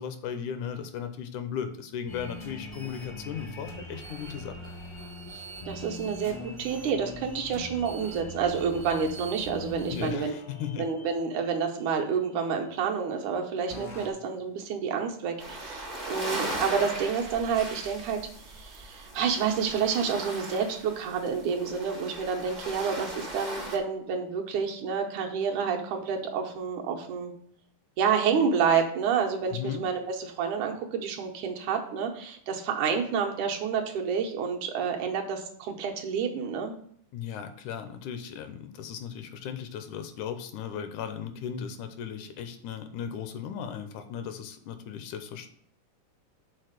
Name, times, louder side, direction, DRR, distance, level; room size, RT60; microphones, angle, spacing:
voice 1, 0.0-4.6 9.9-10.9 29.5-29.9 37.1-45.5, left 8 dB, 80° left, 8 dB, 2.0 m, -36 dB
sound 1, 2.1-12.8 13.7-14.1, left 1 dB, 30° left, 0.4 m, -42 dB
voice 2, 5.3-10.3 10.8-18.2 18.5-27.3 28.0-36.8, right 6 dB, 75° right, 2 dB, 2.3 m, -29 dB
sound 2, 15.4-23.8, right 1 dB, 50° right, 0.5 m, -38 dB
6.6 x 4.0 x 6.5 m, 0.64 s
omnidirectional pair, 3.6 m